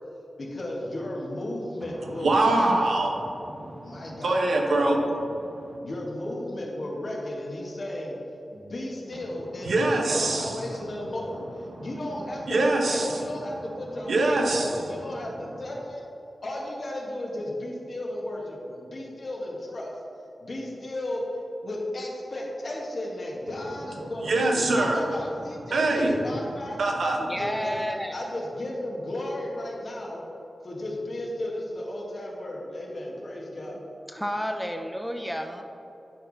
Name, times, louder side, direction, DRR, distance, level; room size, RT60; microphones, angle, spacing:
voice 1, 0.4-2.9 3.8-4.5 5.8-8.2 8.5-16.0 16.4-20.0 20.4-26.8 27.4-30.2 30.6-33.8, left 1 dB, 55° left, -2 dB, 1.6 m, -34 dB
voice 2, 2.2-3.8 4.2-5.2 9.7-10.6 11.8-11.9 12.5-13.1 14.1-14.7 24.3-25.0 25.7-26.1 26.8-27.3, right 2 dB, 80° right, 1 dB, 1.0 m, -23 dB
voice 3, 27.2-28.2 34.1-35.6, equal, ahead, 5 dB, 0.7 m, -31 dB
10.5 x 4.6 x 4.0 m, 2.9 s
cardioid pair, 65°, 0 cm